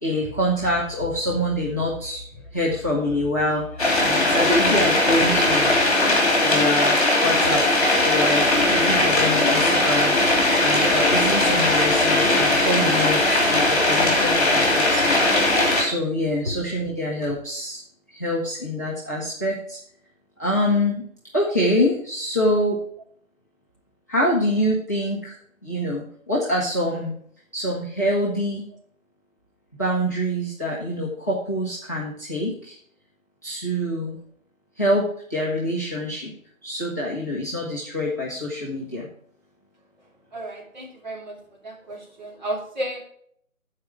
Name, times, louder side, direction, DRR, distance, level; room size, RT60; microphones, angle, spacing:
voice 1, 0.0-2.2 2.5-5.8 6.4-7.7 8.0-15.1 15.4-17.8 18.1-19.8 20.4-21.0 21.3-22.8 24.1-25.4 25.6-27.1 27.5-28.6 29.8-32.8 33.4-34.1 34.8-36.3 36.6-39.1, equal, 15° left, -8 dB, 0.8 m, -25 dB
sound 1, 3.8-15.8, left 2 dB, 30° left, 3.1 m, -19 dB
voice 2, 40.3-41.4 41.6-43.0, equal, 30° right, -3 dB, 2.8 m, -30 dB
14.5 x 4.8 x 4.7 m, 0.63 s
figure-of-eight pair, 160°, 41 cm